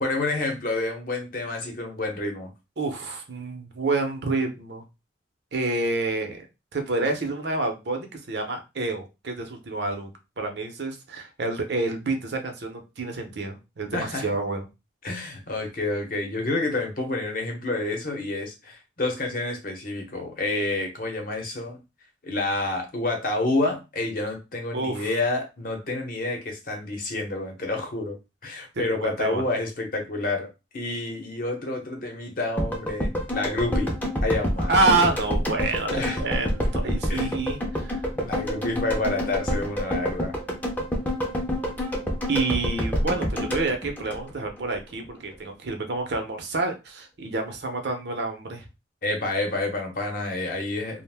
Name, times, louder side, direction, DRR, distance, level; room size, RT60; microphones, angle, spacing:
voice 1, 0.0-2.5 13.9-14.3 15.0-21.8 22.2-28.2 28.4-33.9 34.2-35.0 35.9-36.4 37.1-37.3 38.1-40.3 49.0-51.0, left 2 dB, 50° left, 3 dB, 0.8 m, -29 dB
voice 2, 2.8-4.8 5.5-6.5 6.7-14.6 24.7-25.1 28.7-29.4 34.7-38.0 42.3-48.7, right 3 dB, 65° right, 4 dB, 0.6 m, -28 dB
sound 1, 32.6-44.8 45.0-45.1, equal, 10° left, 0.5 m, -28 dB
2.5 x 2.1 x 3.3 m, 0.26 s
head